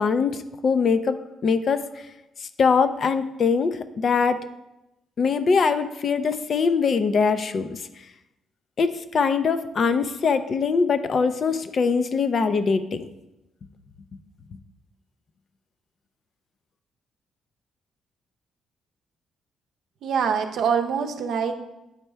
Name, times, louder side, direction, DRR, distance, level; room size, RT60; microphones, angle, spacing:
voice 1, 0.0-1.9 2.4-4.4 5.2-7.8 8.8-13.1, left 5 dB, 50° left, 11 dB, 0.4 m, -22 dB
voice 2, 20.0-21.6, right 6 dB, 70° right, 5 dB, 0.6 m, -24 dB
8.7 x 4.3 x 3.3 m, 0.93 s
cardioid pair, 90°, 0 cm